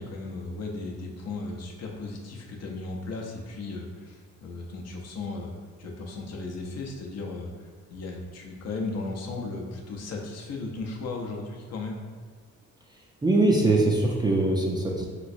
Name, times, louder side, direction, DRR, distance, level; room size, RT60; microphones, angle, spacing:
voice 1, 0.0-5.5 5.8-12.0, left 3 dB, 55° left, 0 dB, 0.6 m, -36 dB
voice 2, 13.2-15.1, right 2 dB, 15° right, -2 dB, 0.4 m, -22 dB
3.1 x 3.0 x 2.6 m, 1.5 s
cardioid pair, 90°, 30 cm